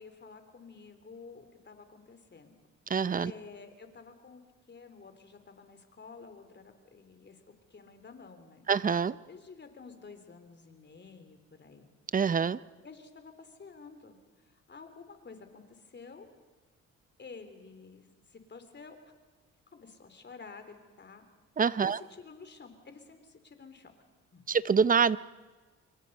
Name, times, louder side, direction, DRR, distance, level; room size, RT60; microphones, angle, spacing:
voice 1, 0.0-2.5 3.2-4.4 4.7-8.7 9.2-11.9 12.8-16.3 17.2-19.0 19.7-21.3 21.8-23.9 24.3-24.4, left 4 dB, 35° left, 8 dB, 3.3 m, -51 dB
voice 2, 2.9-3.3 8.7-9.2 12.1-12.6 21.6-22.0 24.5-25.2, right 6 dB, 30° right, 18 dB, 0.6 m, -25 dB
27.5 x 23.0 x 5.4 m, 1.3 s
cardioid pair, 90°, 30 cm